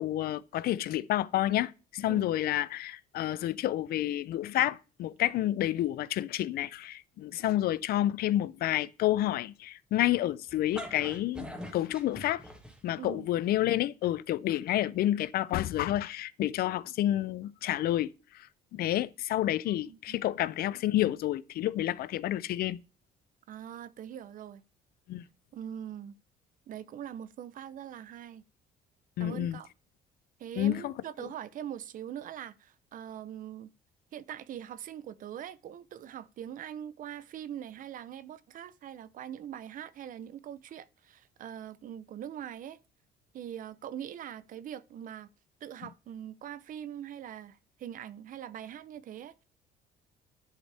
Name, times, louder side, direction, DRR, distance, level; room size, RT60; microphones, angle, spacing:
voice 1, 0.0-11.5 11.7-12.4 12.8-18.5 18.7-22.8 25.1-25.2 29.2-29.6 30.6-30.9 31.2-31.3, left 13 dB, 65° left, 0.5 m, -29 dB
sound 1, 10.5-13.1, equal, 5° right, 1.8 m, -43 dB
voice 2, 19.4-20.2 23.5-24.6 25.5-26.2 26.7-28.4 29.2-29.7 30.4-33.7 34.1-42.8 43.3-45.3 45.6-49.4, right 10 dB, 55° right, 0.6 m, -42 dB
10.5 x 5.4 x 3.4 m
cardioid pair, 110°, 17 cm